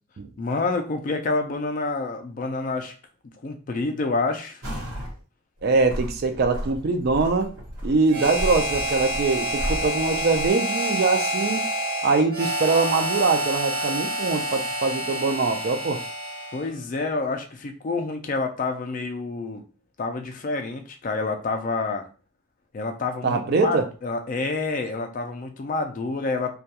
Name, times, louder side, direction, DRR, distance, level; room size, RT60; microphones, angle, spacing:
voice 1, 0.4-2.9 3.4-4.6 16.5-19.6 20.0-22.1 22.7-26.6, left 3 dB, 40° left, 0.3 m, -28 dB
sound 1, 4.6-5.2 5.6-10.5, equal, 85° right, 1.1 m, -33 dB
voice 2, 5.6-7.5 7.8-11.6 12.0-16.0 23.2-23.9, right 4 dB, 50° right, 0.3 m, -23 dB
Harmonica, 8.1-16.7, right 1 dB, 65° right, 0.8 m, -28 dB
2.3 x 2.2 x 2.8 m
head